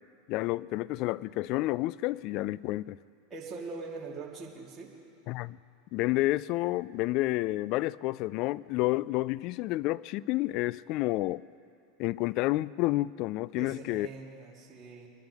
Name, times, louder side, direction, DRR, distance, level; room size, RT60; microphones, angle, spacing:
voice 1, 0.3-3.0 5.3-5.6 5.9-11.4 12.0-14.1, left 18 dB, 55° left, 0.3 m, -30 dB
voice 2, 3.3-4.9 13.6-15.1, right 4 dB, 30° right, 3.4 m, -42 dB
23.5 x 11.0 x 3.5 m
hypercardioid pair, 95°, 0 cm